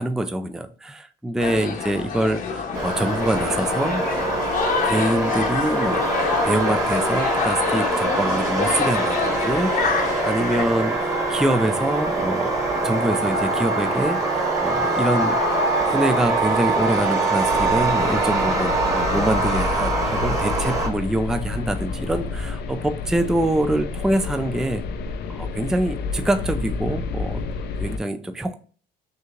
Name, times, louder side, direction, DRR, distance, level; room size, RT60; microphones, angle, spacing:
voice 1, 0.0-4.6 4.8-6.0 6.4-12.5 12.8-15.6 15.9-24.8 25.3-27.4 27.8-28.5, right 1 dB, 5° right, 8 dB, 0.4 m, -25 dB
sound 1, 1.4-10.7, left 6 dB, 55° left, 0.9 m, -27 dB
sound 2, 2.7-20.9, right 2 dB, 20° right, 1.4 m, -23 dB
sound 3, 17.5-28.0, left 4 dB, 75° left, 0.5 m, -30 dB
6.4 x 2.8 x 2.4 m, 0.40 s
cardioid pair, 110°, 17 cm